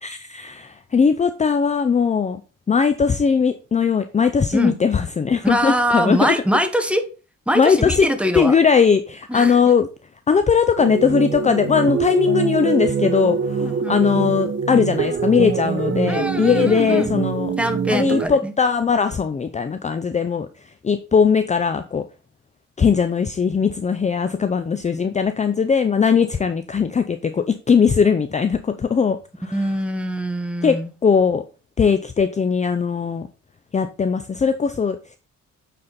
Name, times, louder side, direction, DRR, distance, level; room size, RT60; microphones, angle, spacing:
voice 1, 0.0-2.4 2.7-6.3 7.5-8.1 8.3-9.9 10.3-17.5 17.9-22.1 22.8-29.6 30.6-31.4 31.8-33.3 33.7-35.2, left 6 dB, 25° left, 0.5 m, -19 dB
voice 2, 5.4-7.0 7.5-8.6 9.3-9.6 13.6-14.0 16.1-17.1 17.6-18.5 29.5-30.9, equal, 5° right, 1.1 m, -23 dB
sound 1, 10.8-18.3, right 6 dB, 40° right, 0.8 m, -24 dB
8.8 x 4.2 x 4.0 m
cardioid pair, 90°, 30 cm